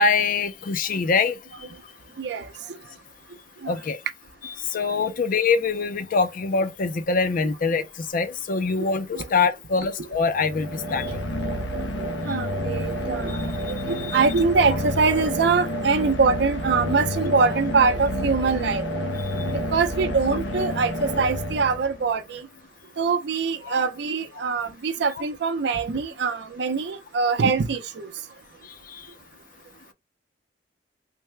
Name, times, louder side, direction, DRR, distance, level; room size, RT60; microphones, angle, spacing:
voice 1, 0.0-1.4 3.7-4.0 4.4-11.1 13.3-13.4 14.0-14.2 23.6-23.8 24.4-24.5 28.9-29.0, left 4 dB, 50° left, 0.5 m, -24 dB
sound 1, 10.3-22.2, equal, 85° left, 0.7 m, -29 dB
voice 2, 12.2-13.4 13.7-18.8 19.7-22.4 23.0-28.1, right 4 dB, 65° right, 0.5 m, -23 dB
3.3 x 2.1 x 3.2 m
head